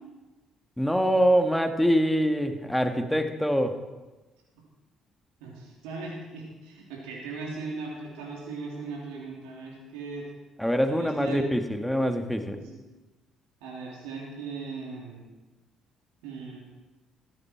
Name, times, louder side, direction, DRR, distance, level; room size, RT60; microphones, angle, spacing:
voice 1, 0.8-3.8 10.6-12.6, equal, 5° left, 6 dB, 1.8 m, -24 dB
voice 2, 5.4-10.2 10.9-11.5 12.6-12.8 13.6-15.2 16.2-16.6, right 4 dB, 75° right, -2 dB, 3.3 m, -38 dB
15.5 x 14.0 x 4.6 m, 1.2 s
hypercardioid pair, 50°, 0 cm